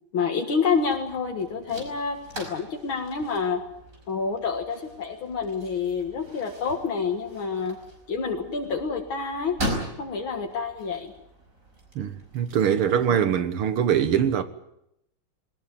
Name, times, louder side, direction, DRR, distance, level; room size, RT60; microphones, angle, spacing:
voice 1, 0.1-3.6 4.1-7.8 8.1-9.6 10.0-11.1, left 5 dB, 70° left, 2.6 m, -28 dB
sound 1, 0.7-13.1, equal, 40° right, 5.6 m, -39 dB
voice 2, 12.0-14.4, right 8 dB, 85° right, 2.3 m, -23 dB
20.5 x 19.5 x 9.2 m
omnidirectional pair, 2.3 m